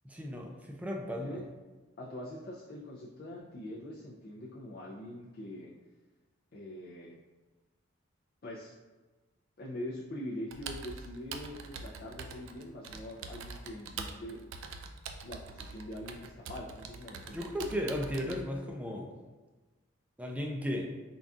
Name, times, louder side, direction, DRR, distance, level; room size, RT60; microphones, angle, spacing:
voice 1, 0.0-1.4 17.3-19.1 20.2-20.9, equal, 5° right, 0 dB, 0.4 m, -35 dB
voice 2, 1.1-1.5 2.0-5.7 6.5-7.2 8.4-8.7 9.6-14.4 15.2-17.4, left 1 dB, 50° left, -5 dB, 0.4 m, -43 dB
Computer keyboard, 10.5-18.4, right 4 dB, 80° right, 0.4 m, -44 dB
3.8 x 2.3 x 3.5 m, 1.2 s
head